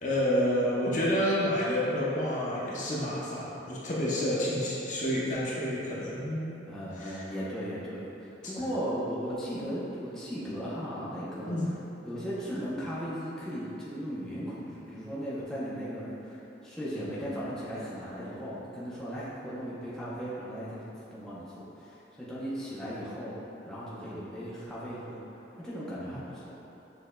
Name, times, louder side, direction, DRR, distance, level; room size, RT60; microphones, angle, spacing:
voice 1, 0.0-6.6 7.0-7.2 11.5-11.7, equal, 40° left, -7 dB, 0.8 m, -29 dB
voice 2, 6.7-11.6 12.0-25.2 25.6-26.5, equal, 5° left, -10 dB, 0.6 m, -37 dB
6.4 x 3.4 x 2.2 m, 3.0 s
head